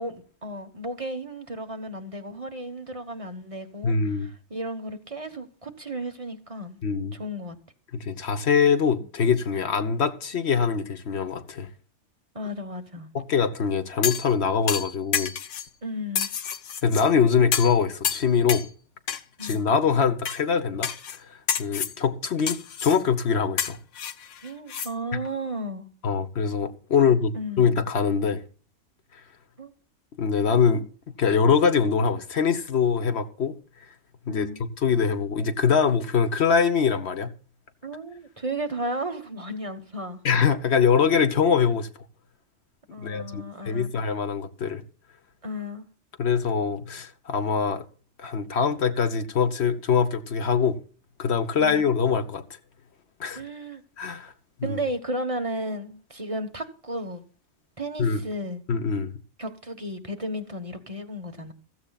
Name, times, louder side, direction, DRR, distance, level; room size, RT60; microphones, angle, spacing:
voice 1, 0.0-6.8 7.1-7.6 12.3-13.1 15.8-16.3 19.4-19.6 24.4-25.9 27.4-27.7 29.6-29.7 34.3-34.6 37.8-40.2 42.9-44.0 45.4-45.8 51.6-51.9 53.3-53.8 54.6-57.2 57.8-58.6 59.4-61.5, right 1 dB, 30° right, 1.2 m, -34 dB
voice 2, 3.8-4.3 6.8-7.2 7.9-11.7 13.1-15.3 16.8-18.7 19.4-20.9 21.2-23.8 25.1-25.2 26.0-27.3 27.6-28.4 30.2-30.8 31.2-33.5 34.3-37.3 40.2-41.9 43.0-44.8 46.2-47.8 48.2-50.8 51.2-52.4 53.2-53.4 54.0-54.3 54.6-54.8 58.0-58.2 58.7-59.1, left 6 dB, 65° left, 1.2 m, -23 dB
sound 1, 14.0-14.3 14.7-15.7 16.1-17.0 17.5-17.8 18.0-18.7 19.1-19.6 20.2-20.4 20.8-21.2 21.5-22.0 22.5-23.0 23.6-24.9 25.2-25.3, left 8 dB, 85° left, 1.2 m, -29 dB
15.5 x 14.5 x 2.4 m
omnidirectional pair, 1.2 m